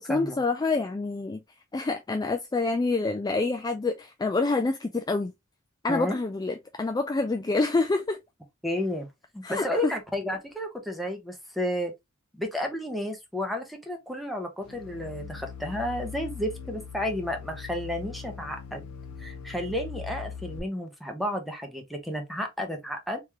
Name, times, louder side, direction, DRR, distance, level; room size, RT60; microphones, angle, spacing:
voice 1, 0.0-1.4 1.7-5.3 5.8-8.2 9.4-9.9, left 3 dB, 20° left, 0.3 m, -27 dB
voice 2, 8.6-9.1 9.3-11.9 12.3-18.8 19.2-23.2, left 1 dB, ahead, 0.9 m, -32 dB
sound 1, 14.7-20.6, left 6 dB, 85° left, 0.6 m, -41 dB
3.5 x 3.1 x 3.0 m
head